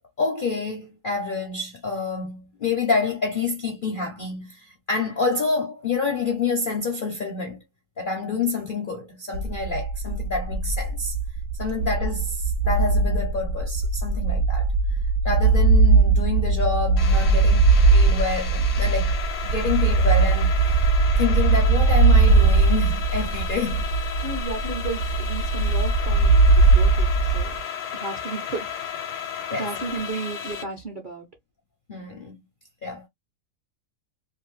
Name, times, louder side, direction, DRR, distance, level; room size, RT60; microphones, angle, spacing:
voice 1, 0.2-7.6 8.0-11.1 11.6-15.0 15.2-17.7 17.9-20.6 21.2-23.9 29.5-29.7 30.1-30.3 31.9-32.4 32.8-33.0, left 4 dB, 50° left, 0.6 m, -28 dB
sound 1, 9.3-27.6, right 3 dB, 85° right, 0.5 m, -20 dB
sound 2, 17.0-30.6, left 8 dB, 80° left, 1.1 m, -34 dB
voice 2, 24.2-27.6 27.9-28.7 29.5-31.3, right 4 dB, 45° right, 0.7 m, -33 dB
2.7 x 2.5 x 3.0 m
omnidirectional pair, 1.7 m